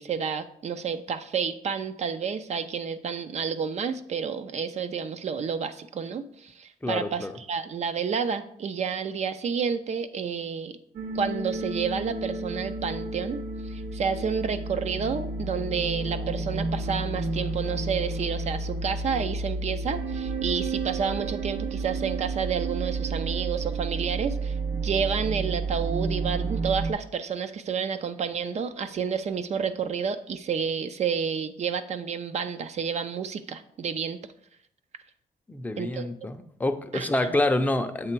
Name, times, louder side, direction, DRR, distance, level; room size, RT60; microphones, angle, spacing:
voice 1, 0.0-10.8 11.1-13.4 13.6-34.2 35.8-36.1 36.9-37.4, right 6 dB, 45° right, 11 dB, 0.4 m, -30 dB
voice 2, 6.8-7.3 35.5-38.1, left 2 dB, 10° left, 6 dB, 0.5 m, -27 dB
sound 1, 10.9-26.9, right 3 dB, 85° right, 0.8 m, -31 dB
7.6 x 3.3 x 4.5 m, 0.68 s
wide cardioid pair, 140°, 15 cm